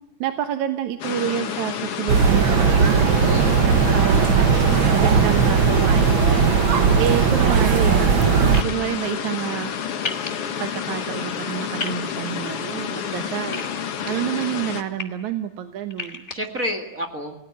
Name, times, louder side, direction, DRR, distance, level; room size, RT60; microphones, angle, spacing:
voice 1, 0.2-3.2 3.7-8.0 8.6-9.7 10.6-13.7 14.1-16.3, right 11 dB, 75° right, 8 dB, 2.5 m, -28 dB
sound 1, 1.0-14.8, left 7 dB, 55° left, 2.3 m, -29 dB
sound 2, 2.1-8.6, right 6 dB, 55° right, 1.5 m, -17 dB
voice 2, 2.9-4.0 16.3-17.3, equal, 30° right, 6 dB, 2.2 m, -31 dB
sound 3, 8.5-8.7 10.0-10.3 11.8-12.0 13.5-14.1 14.7-15.0 15.9-16.4, left 3 dB, 25° left, 2.5 m, -30 dB
30.0 x 18.0 x 9.5 m, 0.83 s
omnidirectional pair, 3.4 m